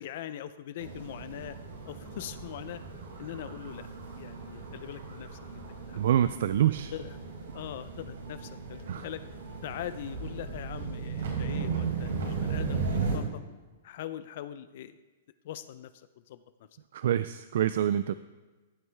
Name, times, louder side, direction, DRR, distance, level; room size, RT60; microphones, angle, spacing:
voice 1, 0.0-1.6 1.8-2.8 3.2-3.9 4.2-6.0 6.9-7.1 7.5-9.2 9.6-13.4 13.8-15.0 15.4-15.9 16.3-16.4, left 11 dB, 50° left, 13 dB, 0.5 m, -41 dB
sound 1, 0.8-13.2, right 5 dB, 85° right, 4.0 m, -36 dB
voice 2, 5.9-6.9 8.9-9.1 16.9-18.1, right 10 dB, 65° right, 13 dB, 0.3 m, -26 dB
15.0 x 7.8 x 3.4 m, 1.3 s
hypercardioid pair, 160°, 0 cm